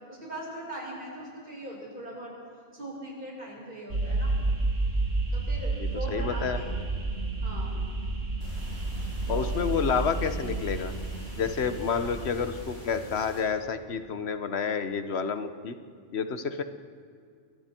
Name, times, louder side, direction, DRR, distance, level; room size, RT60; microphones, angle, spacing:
voice 1, 0.1-2.3 2.7-4.3 5.3-6.8 7.4-7.8 9.3-9.5, right 1 dB, 40° right, -4 dB, 7.3 m, -40 dB
sound 1, 3.9-13.2, right 2 dB, 80° right, 3.0 m, -31 dB
voice 2, 5.8-6.6 9.3-10.9 11.4-15.8 16.1-16.6, left 6 dB, 60° left, 9 dB, 1.4 m, -29 dB
sound 2, 8.4-13.4, equal, 75° left, 8.0 m, -48 dB
30.0 x 22.5 x 4.6 m, 2.2 s
omnidirectional pair, 1.3 m